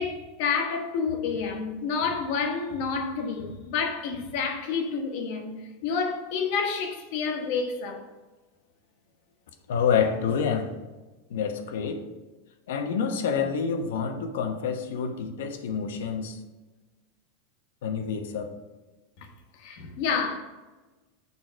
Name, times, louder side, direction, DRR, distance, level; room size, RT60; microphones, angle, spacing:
voice 1, 0.0-8.1 19.2-19.3 19.6-20.4, left 5 dB, 50° left, 1.1 m, -29 dB
voice 2, 9.7-10.7 11.3-12.1 12.7-16.4 17.8-18.6, left 6 dB, 80° left, 0.9 m, -27 dB
6.9 x 4.7 x 5.7 m
supercardioid pair, 175°, 0 cm